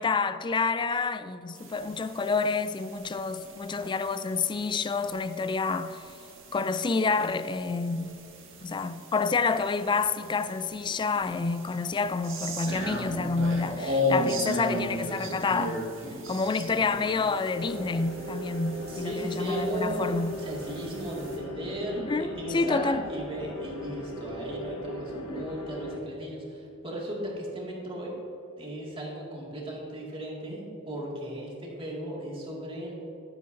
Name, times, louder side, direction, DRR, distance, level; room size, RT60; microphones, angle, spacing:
voice 1, 0.0-6.0 6.5-8.2 8.6-15.9 16.3-20.4 22.0-23.1 25.2-25.5, left 4 dB, 25° left, 0.3 m, -28 dB
sound 1, 1.6-21.4, left 1 dB, 70° right, 1.7 m, -37 dB
sound 2, 17.5-26.0, left 1 dB, 75° left, 1.0 m, -39 dB
voice 2, 18.9-28.1 28.6-32.9, right 1 dB, 25° right, 2.1 m, -36 dB
11.5 x 10.5 x 2.6 m
head